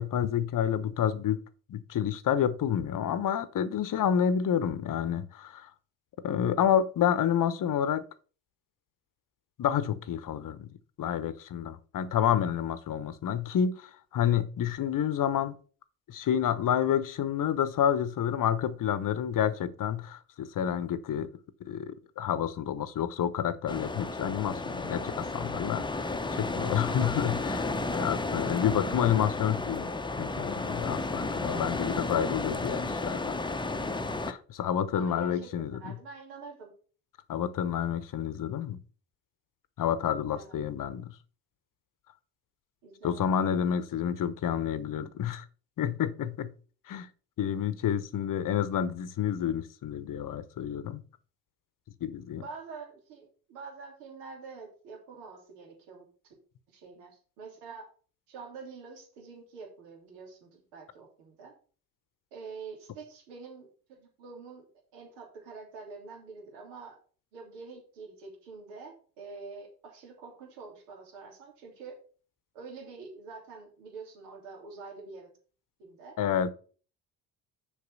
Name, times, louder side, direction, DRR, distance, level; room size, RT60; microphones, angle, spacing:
voice 1, 0.0-1.4 1.7-5.7 6.2-8.0 9.6-10.7 11.0-15.5 16.1-21.3 21.6-29.9 30.2-33.4 34.3-35.9 37.3-38.8 39.8-41.1 43.0-45.4 45.8-46.5 46.9-47.1 47.4-51.0 52.0-52.4 76.2-76.5, left 9 dB, 40° left, 0.9 m, -29 dB
sound 1, 23.7-34.3, left 2 dB, 10° left, 0.8 m, -33 dB
voice 2, 34.9-36.7 40.2-40.7 42.8-43.4 52.3-56.3 56.7-57.9 58.3-61.5 62.3-64.7 64.9-67.0 67.3-72.0 72.5-75.3 75.8-76.2, right 4 dB, 75° right, 3.1 m, -46 dB
6.8 x 5.0 x 6.5 m
hypercardioid pair, 55°, 48 cm